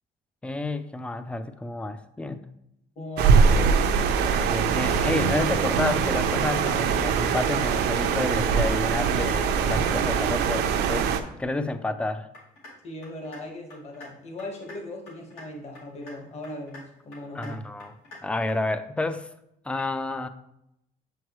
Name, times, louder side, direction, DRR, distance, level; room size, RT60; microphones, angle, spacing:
voice 1, 0.4-2.4 4.5-11.1 11.4-12.3 17.3-17.9 18.2-19.3 19.7-20.3, left 2 dB, 5° left, 11 dB, 0.4 m, -30 dB
voice 2, 2.9-4.0 11.5-11.6 12.8-17.6, left 1 dB, 40° left, 1 dB, 1.4 m, -38 dB
sound 1, 3.2-11.2, right 6 dB, 80° right, 0.6 m, -22 dB
sound 2, 12.3-12.7 13.0-13.4 13.7-14.1 14.4-14.8 15.1-15.4 15.7-16.2 16.4-16.8 17.1-17.5 17.8-18.2 18.5-18.6, left 2 dB, 80° left, 2.4 m, -45 dB
7.3 x 4.7 x 3.1 m, 0.81 s
cardioid pair, 110°, 17 cm